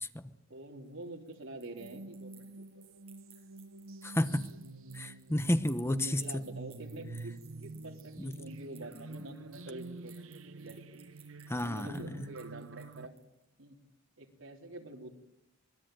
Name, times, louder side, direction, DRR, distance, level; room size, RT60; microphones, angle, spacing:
voice 1, 0.5-2.7 5.9-11.0 11.5-13.1 13.6-13.8 14.2-15.1, right 1 dB, 70° right, 3 dB, 3.5 m, -46 dB
sound 1, 0.8-13.4, right 8 dB, 30° right, 6.5 m, -61 dB
sound 2, 1.8-13.1, right 3 dB, 85° right, 0.9 m, -48 dB
voice 2, 4.0-4.4 4.9-6.2 8.2-8.3 11.5-11.9, left 1 dB, 15° left, 11 dB, 1.0 m, -30 dB
25.5 x 21.0 x 9.1 m, 0.88 s
head